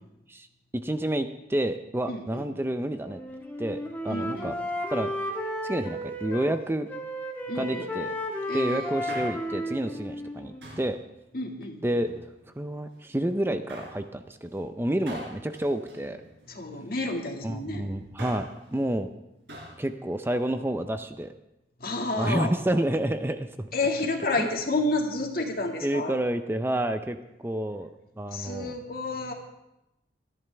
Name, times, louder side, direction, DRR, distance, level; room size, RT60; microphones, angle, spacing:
voice 1, 0.8-3.2 3.6-4.5 4.9-5.1 5.6-6.9 7.5-8.2 8.5-11.0 11.8-12.1 12.6-16.2 17.4-19.1 19.8-21.3 22.2-23.7 24.4-24.5 25.8-27.2 27.4-27.9 28.2-28.7, right 1 dB, 15° right, 8 dB, 0.5 m, -29 dB
voice 2, 2.1-2.4 4.1-4.5 7.5-7.8 8.5-8.9 11.3-11.8 16.5-17.9 21.8-22.5 23.7-26.2 28.3-29.3, left 2 dB, 55° left, 2 dB, 2.1 m, -30 dB
Wind instrument woodwind instrument, 3.0-6.6 6.9-10.9, equal, 10° left, 1.7 m, -33 dB
Male speech man speaking, 8.9-9.7 10.6-11.0 11.8-12.6 13.7-14.1 15.1-16.7 18.0-18.6 19.5-19.8 20.1-20.2, equal, 75° right, 4.4 m, -43 dB
25.0 x 11.0 x 3.5 m, 0.90 s
head